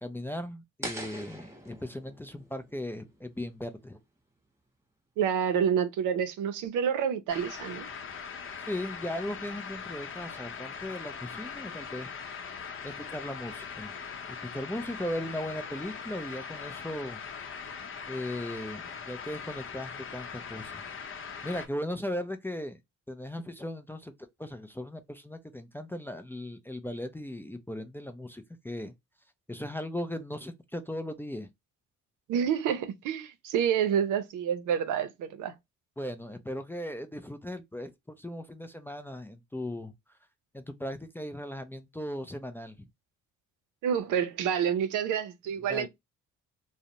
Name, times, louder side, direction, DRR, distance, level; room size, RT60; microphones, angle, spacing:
voice 1, 0.0-4.0 8.7-12.1 12.8-13.9 14.3-17.2 18.1-20.8 21.4-22.8 23.1-24.1 24.4-28.9 29.5-31.5 36.0-39.9 40.5-42.8 45.7-45.9, left 1 dB, 5° left, 0.3 m, -37 dB
sound 1, 0.8-3.9, right 1 dB, 10° right, 0.8 m, -43 dB
voice 2, 5.2-7.9 32.3-35.5 43.8-45.9, right 8 dB, 85° right, 0.6 m, -28 dB
sound 2, 7.3-21.7, left 6 dB, 45° left, 0.6 m, -41 dB
2.5 x 2.1 x 2.8 m
cardioid pair, 90°, 30 cm